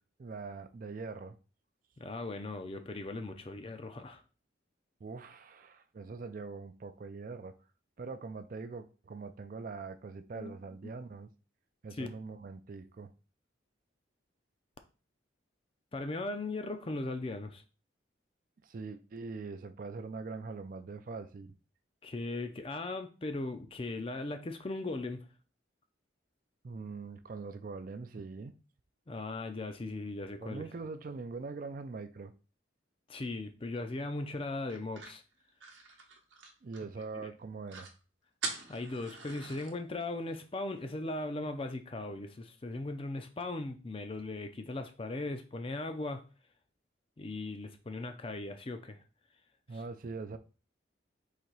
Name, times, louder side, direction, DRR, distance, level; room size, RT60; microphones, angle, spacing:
voice 1, 0.2-1.4 5.0-7.5 8.0-11.3 11.8-13.1 18.6-21.5 26.6-28.5 30.4-32.3 36.6-37.9 49.7-50.4, right 4 dB, 45° right, 0.4 m, -42 dB
voice 2, 2.0-4.2 10.3-10.6 10.8-10.9 11.9-12.1 15.9-17.6 22.0-25.2 29.1-30.6 33.1-35.2 38.7-46.2 47.2-49.0, left 2 dB, 30° left, 0.5 m, -38 dB
sound 1, 34.7-37.1 37.4-37.5 37.7-38.0 38.4-39.7, right 4 dB, 75° right, 0.9 m, -43 dB
4.1 x 2.8 x 4.5 m
head